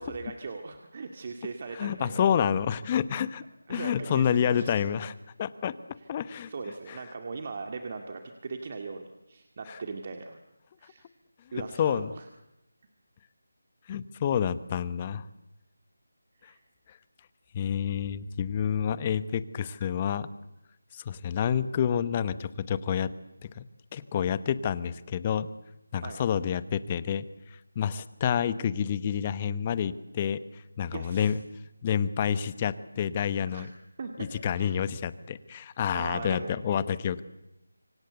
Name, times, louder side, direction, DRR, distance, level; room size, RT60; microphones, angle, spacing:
voice 1, 0.0-2.3 2.5-2.6 3.7-4.7 6.0-6.1 6.5-10.4 10.8-11.1 11.5-12.3 16.4-16.6 26.0-26.2 30.9-31.4 33.5-33.7 34.0-34.3 34.5-34.8 35.9-36.5, right 4 dB, 40° right, 4 dB, 2.0 m, -39 dB
voice 2, 1.7-3.4 3.7-5.1 5.4-5.7 6.1-6.5 6.9-7.0 9.7-9.8 11.8-12.1 13.9-15.2 17.5-20.3 20.9-23.1 23.4-23.6 23.9-25.5 25.9-27.3 27.7-30.4 30.8-31.4 31.8-33.7 34.2-37.2, left 8 dB, 25° left, 15 dB, 1.0 m, -28 dB
26.5 x 24.0 x 8.1 m, 0.90 s
figure-of-eight pair, 165°, 0 cm